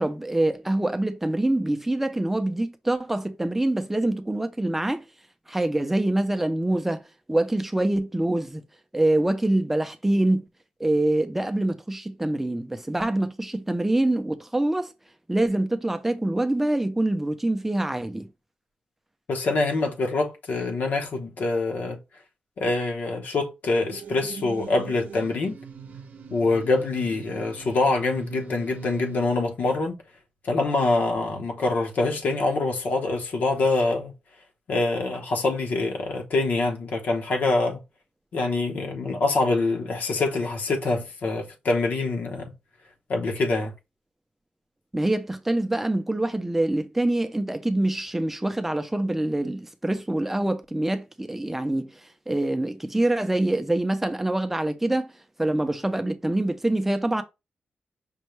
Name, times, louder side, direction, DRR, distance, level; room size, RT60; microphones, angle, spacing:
voice 1, 0.0-5.0 5.5-7.0 7.3-8.6 8.9-10.4 10.8-14.9 15.3-18.3 44.9-51.9 52.3-55.1 55.4-57.2, right 1 dB, 5° right, 0.5 m, -25 dB
voice 2, 19.3-22.0 22.6-25.6 26.3-30.0 30.4-34.1 34.7-37.8 38.3-42.5 43.1-43.7, left 3 dB, 65° left, 0.9 m, -25 dB
sound 1, 23.9-29.3, right 6 dB, 65° right, 0.6 m, -41 dB
5.3 x 2.2 x 3.1 m
wide cardioid pair, 135°, 3 cm